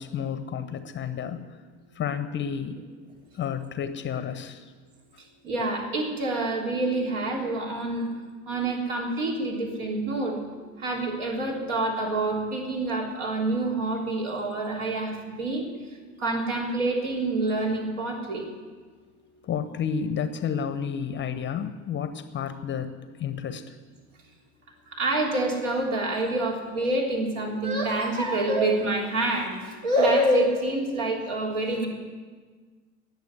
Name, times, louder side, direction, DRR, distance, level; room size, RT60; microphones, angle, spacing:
voice 1, 0.0-1.5 2.0-2.8 3.3-4.6 19.4-23.7, left 7 dB, 25° left, 11 dB, 0.9 m, -31 dB
voice 2, 5.4-8.1 8.5-18.5 24.9-31.9, right 2 dB, 60° right, -1 dB, 3.5 m, -27 dB
18.5 x 7.2 x 9.6 m, 1.5 s
figure-of-eight pair, 70°, 43 cm